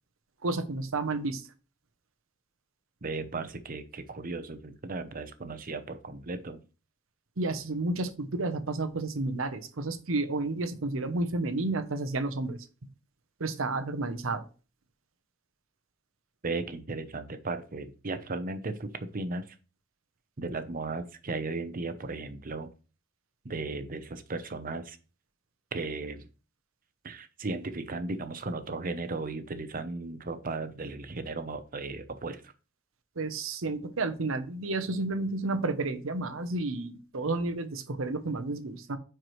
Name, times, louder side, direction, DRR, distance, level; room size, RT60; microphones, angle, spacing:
voice 1, 0.4-1.4 7.4-12.6 13.4-14.4 33.2-39.0, right 2 dB, 80° right, 9 dB, 0.8 m, -31 dB
voice 2, 3.0-6.6 16.4-19.4 20.4-22.7 23.4-25.0 25.7-26.3 27.0-32.5, right 3 dB, 45° right, 10 dB, 0.8 m, -36 dB
9.1 x 4.7 x 3.2 m, 0.35 s
head